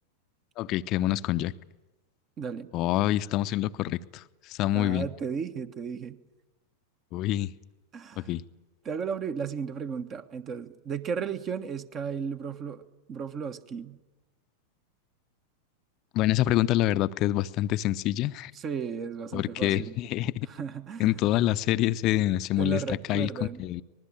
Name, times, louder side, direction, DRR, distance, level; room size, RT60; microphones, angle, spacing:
voice 1, 0.6-1.5 2.7-5.1 7.1-7.5 8.2-8.4 16.1-18.5 19.3-20.3 21.0-23.8, left 14 dB, 40° left, 14 dB, 0.8 m, -26 dB
voice 2, 2.4-2.7 4.7-6.2 7.9-8.3 8.8-12.8 13.1-14.0 18.5-19.9 20.5-21.3 22.1-22.2 22.6-23.7, right 6 dB, 30° right, 9 dB, 1.4 m, -34 dB
24.5 x 20.5 x 9.0 m, 1.1 s
figure-of-eight pair, 90°, 0 cm